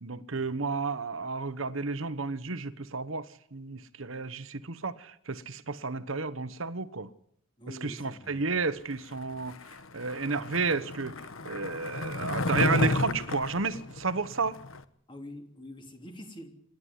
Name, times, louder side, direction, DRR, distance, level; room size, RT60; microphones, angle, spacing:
voice 1, 0.0-7.1 7.7-9.6 9.9-11.1 11.4-14.6, right 4 dB, 70° right, 1.2 m, -32 dB
voice 2, 7.6-8.5 15.1-16.5, left 1 dB, 25° left, 3.2 m, -45 dB
Skateboard, 9.4-14.8, left 2 dB, 75° left, 1.3 m, -32 dB
27.0 x 12.0 x 9.6 m
head